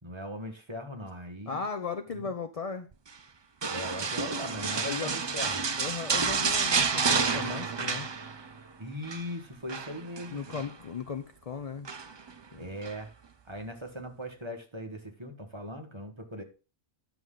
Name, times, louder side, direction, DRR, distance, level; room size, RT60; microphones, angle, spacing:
voice 1, 0.0-1.6 2.1-2.3 3.7-5.6 8.8-10.6 12.6-13.1 13.4-16.4, equal, 25° right, 1.5 m, -39 dB
voice 2, 1.5-2.9 4.8-5.2 5.8-8.1 10.3-11.9 12.5-12.6, left 5 dB, 40° left, 0.5 m, -36 dB
sound 1, 3.6-8.6 8.9-9.2 9.7-10.7 11.8-12.3 12.8-13.0, right 5 dB, 45° right, 0.3 m, -30 dB
11.0 x 7.0 x 3.8 m
omnidirectional pair, 1.3 m